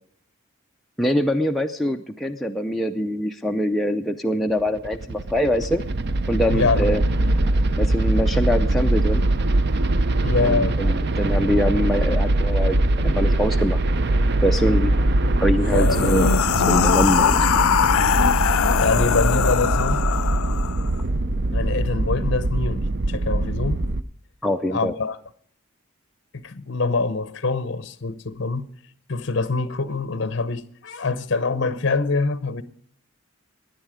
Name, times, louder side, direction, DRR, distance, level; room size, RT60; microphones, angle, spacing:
voice 1, 1.0-5.8 6.3-7.0 7.8-9.2 10.4-13.8 14.4-14.9 15.4-16.3 16.6-17.5 24.4-25.0, equal, ahead, 0.4 m, -24 dB
sound 1, 4.6-24.0, right 2 dB, 50° right, 0.5 m, -22 dB
voice 2, 6.5-6.9 10.2-11.0 15.7-16.1 18.8-20.0 21.5-23.8 24.7-25.2 26.3-28.7 29.1-32.6, left 3 dB, 55° left, 0.7 m, -24 dB
sound 2, 15.6-20.9, left 8 dB, 80° left, 0.4 m, -21 dB
16.5 x 10.5 x 4.9 m
head